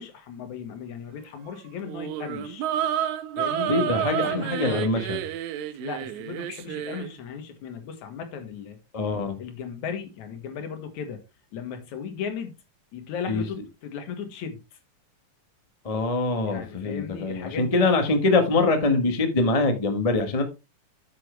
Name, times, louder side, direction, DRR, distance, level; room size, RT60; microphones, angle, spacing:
voice 1, 0.0-2.7 3.4-4.9 5.8-8.8 9.4-11.2 11.5-12.6 12.9-14.6 16.4-18.0, left 6 dB, 80° left, 2.9 m, -36 dB
sound 1, 1.8-7.1, right 10 dB, 85° right, 2.1 m, -30 dB
voice 2, 3.6-5.2 8.9-9.4 13.3-13.4 15.8-20.4, left 3 dB, 35° left, 0.5 m, -23 dB
8.7 x 7.8 x 3.3 m
omnidirectional pair, 3.4 m